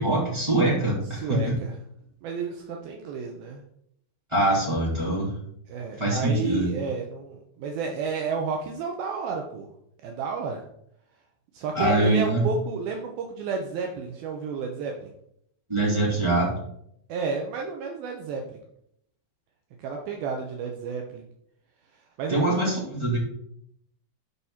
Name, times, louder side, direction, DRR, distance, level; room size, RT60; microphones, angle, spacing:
voice 1, 0.0-1.4 4.3-5.3 6.0-6.7 11.7-12.4 15.7-16.5 22.3-23.2, right 1 dB, 5° right, -6 dB, 3.2 m, -23 dB
voice 2, 1.1-1.7 2.2-3.6 5.7-9.7 10.0-10.6 11.5-15.1 17.1-18.6 19.8-21.3 22.2-22.6, right 5 dB, 75° right, 2 dB, 2.7 m, -31 dB
13.0 x 5.4 x 4.3 m, 0.72 s
omnidirectional pair, 4.6 m